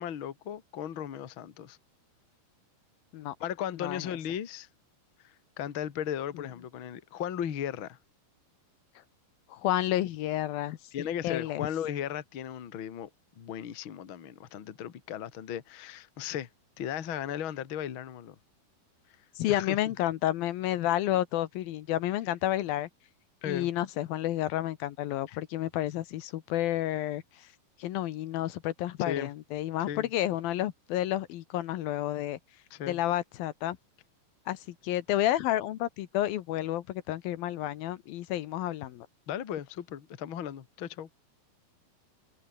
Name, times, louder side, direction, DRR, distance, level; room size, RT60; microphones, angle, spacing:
voice 1, 0.0-1.8 3.4-4.7 5.2-8.0 10.9-13.1 13.4-16.5 16.8-18.4 19.5-19.8 23.4-23.7 25.3-25.4 29.0-29.3 29.9-30.1 32.7-33.0 39.3-41.1, left 9 dB, 45° left, 1.9 m, -36 dB
voice 2, 9.5-11.7 19.4-22.9 23.5-27.5 27.8-32.4 32.9-33.8 34.5-39.1, left 13 dB, 75° left, 2.9 m, -30 dB
omnidirectional pair, 4.3 m